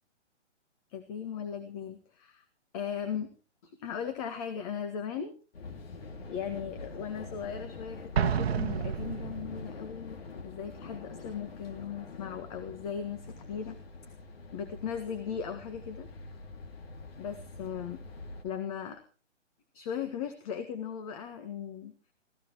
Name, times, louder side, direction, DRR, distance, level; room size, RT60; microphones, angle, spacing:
voice 1, 0.9-2.4 2.7-3.3 3.6-5.4 6.3-13.8 14.0-14.2 14.5-16.1 17.2-18.0 18.4-19.0 19.7-21.9, left 7 dB, 30° left, 8 dB, 1.7 m, -38 dB
sound 1, 5.5-18.4, left 3 dB, 55° left, 2.5 m, -45 dB
Explosion, 8.1-9.8, right 7 dB, 60° right, 1.1 m, -30 dB
24.0 x 17.0 x 3.1 m, 0.37 s
figure-of-eight pair, 140°, 36 cm